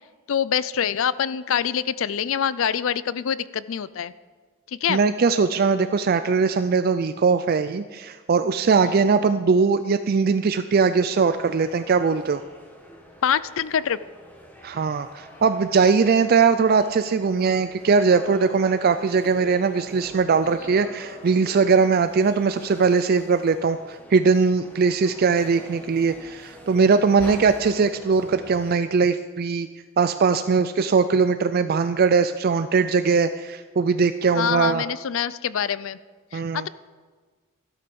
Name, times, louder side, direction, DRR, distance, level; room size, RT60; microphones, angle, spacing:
voice 1, 0.3-4.1 4.8-5.0 13.2-14.0 34.3-36.0 36.3-36.7, left 8 dB, 65° left, 17 dB, 0.4 m, -25 dB
voice 2, 4.9-12.4 14.6-29.7 30.0-34.8 36.3-36.7, right 5 dB, 45° right, 10 dB, 0.4 m, -20 dB
sound 1, 11.2-28.8, equal, 10° left, 1.4 m, -44 dB
13.0 x 12.0 x 5.3 m, 1.4 s
head